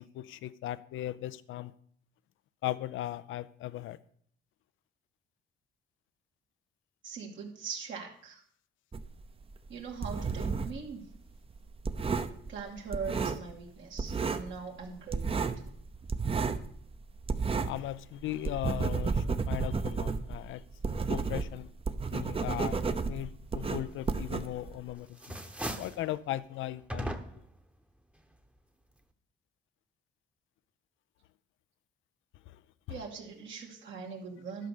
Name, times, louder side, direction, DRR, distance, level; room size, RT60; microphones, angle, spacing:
voice 1, 0.0-1.7 2.6-4.0 17.6-20.6 21.1-21.7 22.1-25.1 25.8-27.2, left 14 dB, 80° left, 0.5 m, -37 dB
voice 2, 7.0-8.4 9.7-11.0 12.5-15.5 32.9-34.7, right 5 dB, 70° right, 2.3 m, -41 dB
sound 1, 8.9-10.9 11.1-13.7 14.0-14.6 14.8-17.9 18.2-24.9, right 4 dB, 30° right, 0.7 m, -32 dB
sound 2, 24.5-24.8 25.1-26.1 26.9-27.6, right 1 dB, 5° right, 1.0 m, -38 dB
11.5 x 5.3 x 6.6 m
cardioid pair, 90°, 20 cm